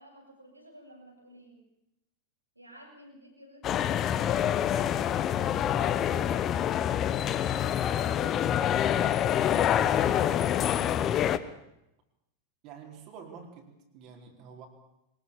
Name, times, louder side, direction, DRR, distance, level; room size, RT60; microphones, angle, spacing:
voice 1, 0.0-1.6 2.6-4.0 4.5-11.2, equal, 90° right, 0 dB, 7.2 m, -52 dB
sound 1, 3.6-11.4, left 10 dB, 30° left, 1.1 m, -26 dB
voice 2, 12.6-14.7, right 6 dB, 40° right, 2 dB, 4.4 m, -48 dB
23.0 x 20.5 x 7.2 m, 0.86 s
figure-of-eight pair, 90°, 0 cm